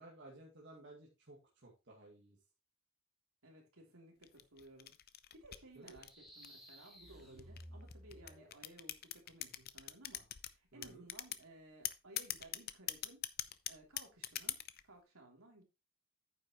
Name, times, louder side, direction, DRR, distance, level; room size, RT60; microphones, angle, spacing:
voice 1, 0.0-2.4 5.8-6.0 10.7-11.1, right 2 dB, 55° right, -3 dB, 2.2 m, -56 dB
voice 2, 3.4-5.0 5.3-13.2 13.7-15.6, right 1 dB, 75° right, 1 dB, 3.1 m, -59 dB
sound 1, 4.2-6.7 7.4-10.5 10.8-11.4 11.8-14.8, left 13 dB, 45° left, 0.5 m, -42 dB
sound 2, 5.8-8.7, equal, ahead, 2.9 m, -56 dB
9.3 x 7.7 x 3.0 m, 0.25 s
head